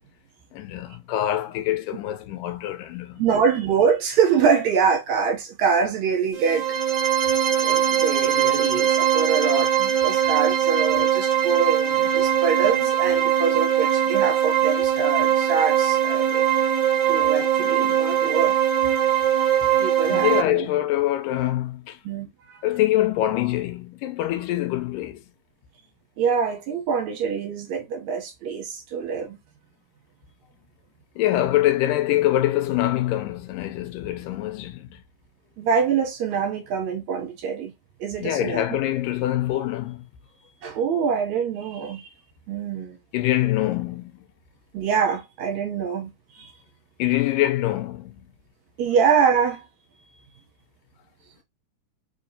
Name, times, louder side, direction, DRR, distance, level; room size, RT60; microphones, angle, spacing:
voice 1, 0.5-3.2 20.1-22.0 22.6-25.2 31.2-35.0 38.2-40.0 43.1-44.1 47.0-48.3, left 14 dB, 85° left, 2.2 m, -24 dB
voice 2, 3.2-6.8 7.6-16.5 17.1-18.6 19.8-20.7 22.1-22.3 26.2-29.4 35.6-37.7 38.0-38.6 40.6-42.1 42.5-43.0 44.7-46.1 46.4-46.5 48.8-49.6, right 6 dB, 70° right, 1.9 m, -24 dB
sound 1, 6.3-20.4, right 10 dB, 55° right, 1.6 m, -21 dB
5.0 x 2.8 x 2.7 m
omnidirectional pair, 3.8 m